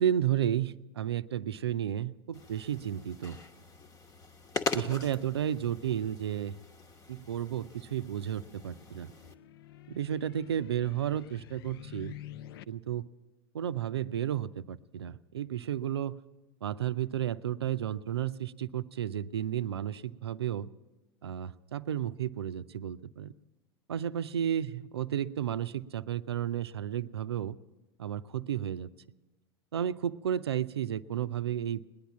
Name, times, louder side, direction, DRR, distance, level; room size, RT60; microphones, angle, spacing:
voice 1, 0.0-3.4 4.7-6.5 7.1-9.1 9.9-12.1 12.7-13.1 13.5-16.2 16.6-20.7 21.2-23.3 23.9-27.6 28.0-28.9 29.7-31.8, right 10 dB, 80° right, 14 dB, 0.5 m, -32 dB
sound 1, 2.3-9.3, left 4 dB, 25° left, 1.1 m, -41 dB
sound 2, 7.7-12.6, left 13 dB, 65° left, 0.5 m, -49 dB
19.0 x 10.5 x 7.2 m, 1.2 s
figure-of-eight pair, 85°, 13 cm